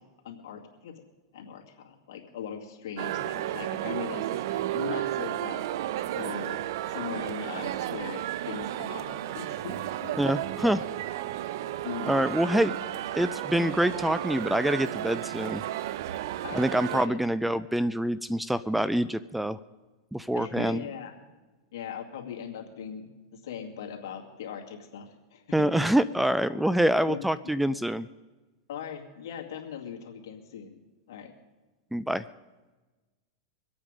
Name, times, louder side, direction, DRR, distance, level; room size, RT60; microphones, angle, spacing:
voice 1, 0.2-0.9 1.3-5.8 6.1-6.6 6.9-10.8 11.8-12.2 12.5-12.7 16.4-17.6 20.4-21.1 21.7-25.7 27.1-27.2 28.7-30.8 31.1-31.3, left 7 dB, 70° left, 1 dB, 2.3 m, -40 dB
sound 1, 3.0-17.1, right 13 dB, 65° right, 0.6 m, -33 dB
voice 2, 10.2-10.8 12.1-12.8 13.1-15.6 16.5-19.6 20.1-20.8 25.5-28.1 31.9-32.2, right 1 dB, 5° right, 16 dB, 0.4 m, -26 dB
23.5 x 8.8 x 5.2 m, 1.2 s
hypercardioid pair, 125°, 2 cm